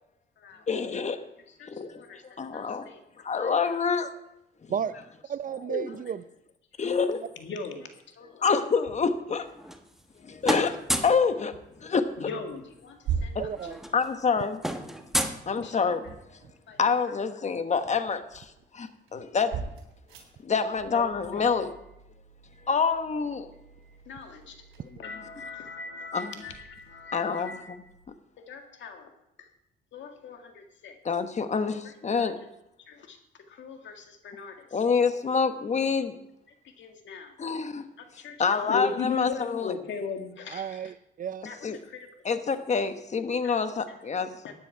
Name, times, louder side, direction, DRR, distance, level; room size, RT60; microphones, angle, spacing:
voice 1, 0.7-1.2 1.7-2.0 2.4-2.9 3.2-4.1 5.7-5.9 6.8-7.2 8.4-9.5 10.2-11.5 11.8-12.3 13.3-13.4 13.9-14.6 15.5-16.1 16.7-19.6 20.4-21.7 22.7-23.5 26.1-26.4 27.1-27.6 31.0-32.4 34.7-36.2 37.4-37.8 38.4-39.7 41.6-41.8 42.2-44.3, left 5 dB, 35° left, 9 dB, 1.2 m, -27 dB
voice 2, 1.6-3.0 3.4-3.8 7.4-7.9 8.2-8.5 12.2-13.4 13.7-13.8 15.6-15.8 16.7-16.8 20.9-21.0 21.3-21.4 24.1-24.6 25.0-27.8 28.5-29.1 29.9-31.0 31.8-31.9 32.2-32.3 32.9-33.2 33.5-34.7 36.6-37.3 38.0-40.8 41.5-42.1 43.4-43.6 44.4-44.5, left 5 dB, 70° left, 4 dB, 1.9 m, -39 dB
voice 3, 5.3-6.2 13.4-13.8 40.5-41.5, right 8 dB, 45° right, 15 dB, 0.5 m, -33 dB
sound 1, 8.4-8.5 8.9-9.2 11.0-11.9 12.3-12.6 13.0-15.0 15.7-17.1 17.5-28.1, right 7 dB, 85° right, 3.4 m, -42 dB
sound 2, 9.4-10.2 10.4-11.3 12.6-12.7 13.0-13.2 13.5-16.1, equal, ahead, 1.2 m, -32 dB
13.5 x 9.7 x 4.7 m, 0.84 s
cardioid pair, 90°, 20 cm